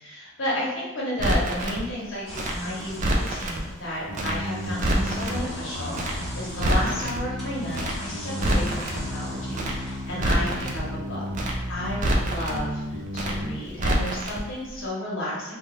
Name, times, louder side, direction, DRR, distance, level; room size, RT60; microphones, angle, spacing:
voice 1, 0.0-11.2 11.7-12.7 13.1-15.5, left 1 dB, 80° left, -6 dB, 0.9 m, -32 dB
Crackle, 1.2-1.8 2.3-3.6 4.1-4.4 4.6-5.4 5.9-6.2 6.4-7.2 7.7-8.0 8.3-9.0 9.5-9.8 10.1-10.8 11.3-11.6 11.9-12.6 13.1-13.4 13.7-14.4 14.7-14.8, right 1 dB, 40° right, 0.4 m, -26 dB
sound 1, 2.3-10.5, equal, ahead, 0.7 m, -40 dB
sound 2, 4.1-13.6, equal, 80° right, 0.6 m, -34 dB
2.4 x 2.2 x 3.0 m, 1.0 s
head